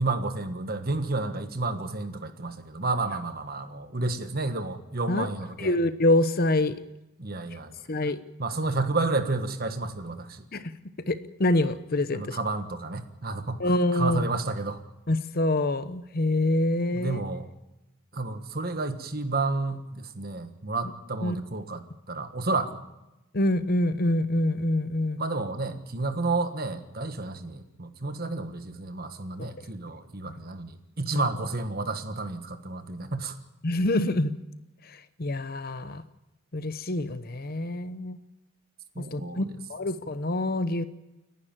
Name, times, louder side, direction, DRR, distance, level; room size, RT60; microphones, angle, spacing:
voice 1, 0.0-5.8 7.2-8.1 8.4-10.4 12.1-14.8 16.9-17.5 18.1-22.8 25.2-33.4 38.9-39.5, right 3 dB, 40° right, 8 dB, 1.5 m, -31 dB
voice 2, 5.6-6.8 7.9-8.2 10.5-10.6 11.1-12.4 13.6-14.2 15.1-17.2 21.2-21.4 23.3-25.2 29.4-29.5 33.6-34.3 35.2-36.0 36.5-38.2 39.0-39.4 39.7-40.8, left 1 dB, 40° left, 12 dB, 0.9 m, -26 dB
29.5 x 11.0 x 9.0 m, 0.96 s
head